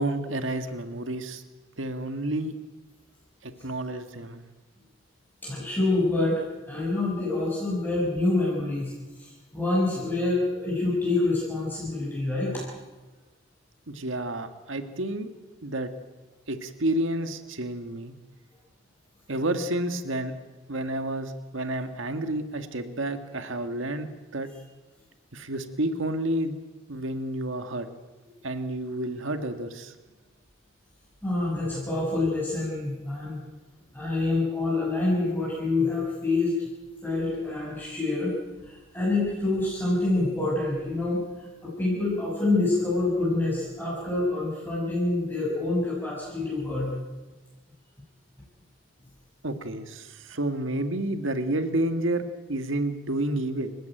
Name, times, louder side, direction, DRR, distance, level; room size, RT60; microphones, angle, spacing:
voice 1, 0.0-1.4 1.8-2.6 3.4-4.4 13.9-15.3 15.6-15.9 16.5-18.1 19.3-20.3 20.7-24.1 24.3-24.5 25.3-26.6 26.9-27.9 28.4-30.0 49.4-53.7, right 1 dB, 85° right, 8 dB, 1.7 m, -30 dB
voice 2, 5.4-12.6 31.2-33.4 33.9-36.7 37.0-46.9, left 2 dB, 10° left, -6 dB, 6.8 m, -27 dB
29.5 x 15.5 x 9.2 m, 1.2 s
head